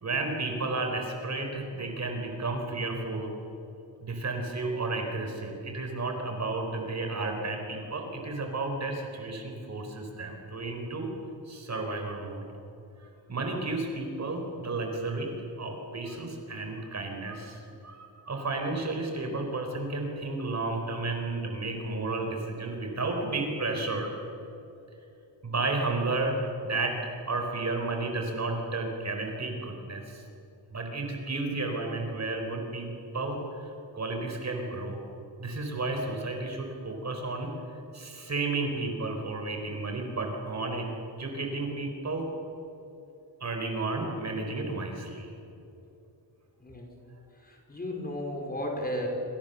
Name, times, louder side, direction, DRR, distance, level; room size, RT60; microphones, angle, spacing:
voice 1, 0.0-3.3 4.0-11.1 11.5-12.5 13.0-15.3 15.6-24.1 25.4-26.3 26.6-27.0 27.3-30.2 30.7-32.9 33.1-35.0 35.4-37.5 37.9-40.9 41.2-42.3 43.4-45.3, right 3 dB, 40° right, 3 dB, 4.3 m, -32 dB
voice 2, 47.4-49.1, left 1 dB, 20° left, 0 dB, 5.2 m, -34 dB
28.0 x 28.0 x 7.0 m, 2.8 s
wide cardioid pair, 180°, 43 cm